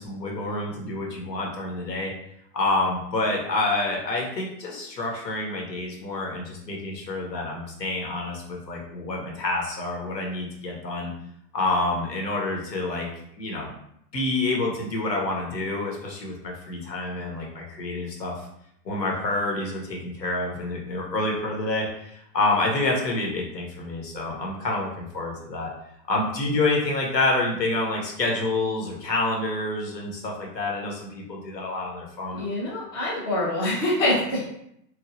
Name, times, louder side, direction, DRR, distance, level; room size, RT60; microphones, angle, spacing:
voice 1, 0.0-2.1 2.5-11.1 11.5-13.1 13.3-13.7 14.1-18.3 18.8-25.7 26.1-32.5, left 2 dB, 85° left, -1 dB, 1.0 m, -28 dB
voice 2, 32.3-34.4, left 1 dB, 20° left, -6 dB, 0.3 m, -25 dB
3.0 x 2.4 x 2.5 m, 0.75 s
hypercardioid pair, 115°, 49 cm